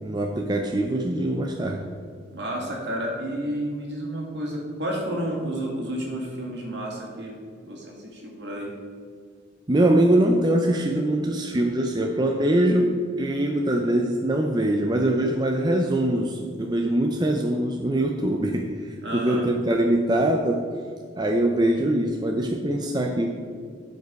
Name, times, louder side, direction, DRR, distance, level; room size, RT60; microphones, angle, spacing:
voice 1, 0.0-1.9 9.7-20.7 21.1-23.3, right 1 dB, 20° right, 2 dB, 0.5 m, -23 dB
voice 2, 2.3-7.4 7.6-8.7 19.0-19.5, right 1 dB, 60° right, -2 dB, 2.4 m, -31 dB
12.5 x 5.3 x 5.2 m, 2.1 s
head